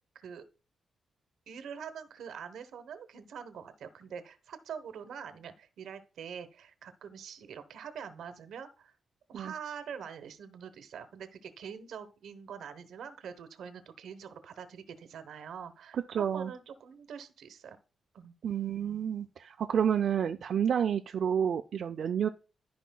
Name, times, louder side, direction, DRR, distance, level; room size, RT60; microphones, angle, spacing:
voice 1, 0.1-0.4 1.5-8.9 9.3-17.8 18.1-18.3, right 7 dB, 85° right, 1.0 m, -44 dB
voice 2, 15.9-16.5 18.4-22.3, right 8 dB, 65° right, 0.4 m, -30 dB
14.0 x 5.1 x 2.3 m
wide cardioid pair, 135°, 0 cm